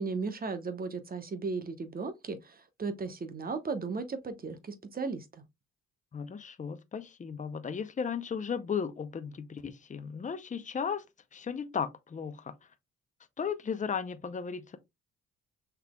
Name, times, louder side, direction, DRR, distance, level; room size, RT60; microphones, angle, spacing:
voice 1, 0.0-5.2, right 4 dB, 30° right, 0.9 m, -36 dB
voice 2, 6.1-11.0 11.3-12.5 13.4-14.8, left 6 dB, 25° left, 0.6 m, -35 dB
5.9 x 3.3 x 2.2 m
cardioid pair, 90°, 30 cm